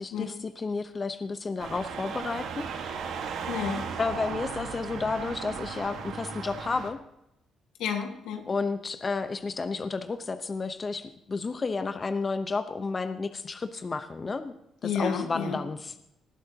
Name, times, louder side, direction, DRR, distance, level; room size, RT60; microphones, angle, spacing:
voice 1, 0.0-3.0 4.0-7.0 8.5-14.5 14.8-16.0, left 4 dB, 35° left, 9 dB, 0.8 m, -32 dB
sound 1, 1.6-6.9, right 6 dB, 80° right, 1.5 m, -36 dB
voice 2, 3.5-3.9 7.8-8.5 14.8-15.6, left 6 dB, 90° left, 4 dB, 1.8 m, -31 dB
19.0 x 11.0 x 2.9 m, 0.82 s
cardioid pair, 90°, 0 cm